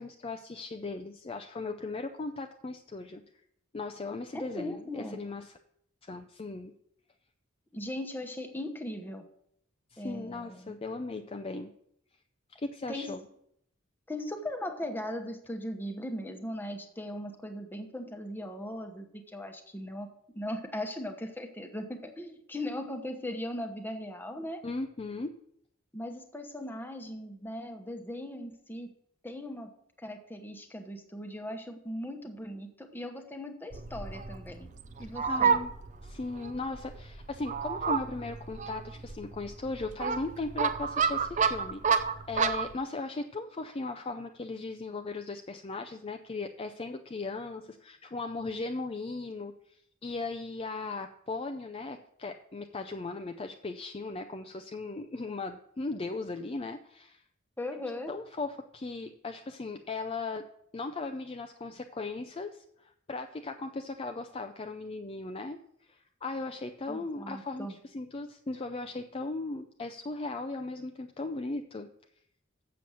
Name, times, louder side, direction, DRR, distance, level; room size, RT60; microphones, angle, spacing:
voice 1, 0.0-3.2 3.7-5.5 6.0-6.7 9.9-11.7 12.5-13.2 24.6-25.3 35.3-35.7 36.0-57.2 58.1-60.5 60.7-71.9, left 3 dB, 30° left, 5 dB, 0.4 m, -37 dB
voice 2, 4.3-5.2 7.7-9.3 10.0-10.7 12.9-13.1 14.1-20.1 20.3-24.6 25.9-28.9 29.2-29.7 30.0-34.7 35.0-35.6 57.6-58.1 66.9-67.8, left 1 dB, 10° left, 4 dB, 1.0 m, -38 dB
Fowl, 33.7-42.7, right 6 dB, 35° right, 0.5 m, -31 dB
7.7 x 6.9 x 6.2 m, 0.71 s
head